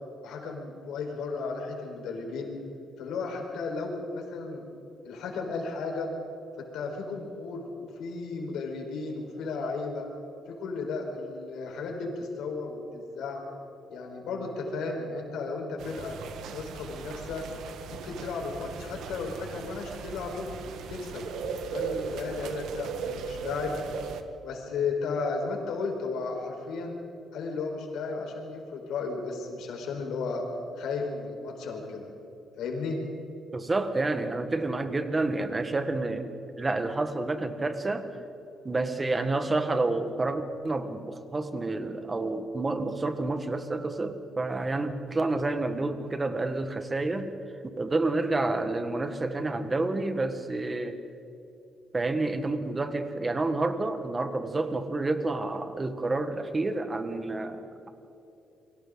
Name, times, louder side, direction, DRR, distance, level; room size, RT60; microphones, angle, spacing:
voice 1, 0.2-2.5 3.0-4.6 5.0-6.1 6.6-10.1 10.5-13.4 13.9-16.2 16.5-17.5 17.9-20.5 20.9-21.3 21.7-23.8 24.4-27.0 27.3-30.4 30.8-32.1 32.6-33.0, left 4 dB, 85° left, 1 dB, 4.7 m, -34 dB
sound 1, 15.8-24.2, right 5 dB, 80° right, 1.5 m, -37 dB
voice 2, 33.5-36.3 36.6-38.1 38.7-47.3 47.6-51.0 51.9-57.9, right 2 dB, 20° right, 8 dB, 1.6 m, -29 dB
28.5 x 23.5 x 4.0 m, 2.9 s
cardioid pair, 130°, 0 cm